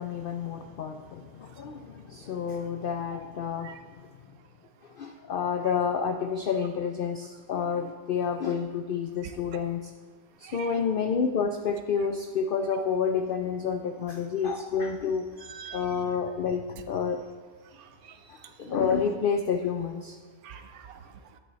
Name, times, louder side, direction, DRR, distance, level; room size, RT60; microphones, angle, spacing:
voice 1, 0.0-3.8 4.9-9.9 10.4-15.3 15.7-17.2 18.2-20.2, left 6 dB, 80° left, 6 dB, 0.4 m, -29 dB
voice 2, 10.4-10.8 15.4-16.1 17.7-18.2 20.4-21.4, right 8 dB, 80° right, 8 dB, 1.2 m, -45 dB
9.4 x 8.1 x 4.0 m, 1.5 s
omnidirectional pair, 1.5 m